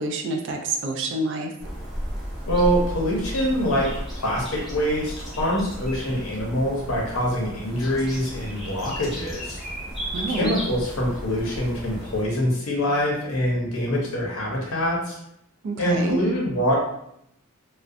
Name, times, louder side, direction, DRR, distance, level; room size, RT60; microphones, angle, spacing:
voice 1, 0.0-1.5 10.1-10.6 15.6-16.2, right 2 dB, 60° right, 3 dB, 0.3 m, -27 dB
sound 1, 1.6-12.2, equal, ahead, 0.5 m, -34 dB
voice 2, 2.5-3.9 4.1-9.6 10.3-15.2 15.8-16.8, equal, 85° left, -2 dB, 0.6 m, -24 dB
2.3 x 2.1 x 2.5 m, 0.77 s
head